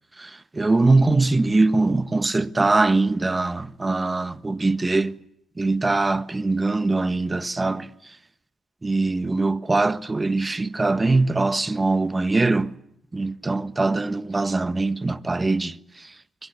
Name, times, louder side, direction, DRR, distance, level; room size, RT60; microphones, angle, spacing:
voice 1, 0.2-5.2 5.6-8.2 8.8-12.8 13.1-16.2, right 3 dB, 20° right, 1.4 m, -22 dB
24.5 x 22.5 x 8.5 m
cardioid pair, 75°, 0 cm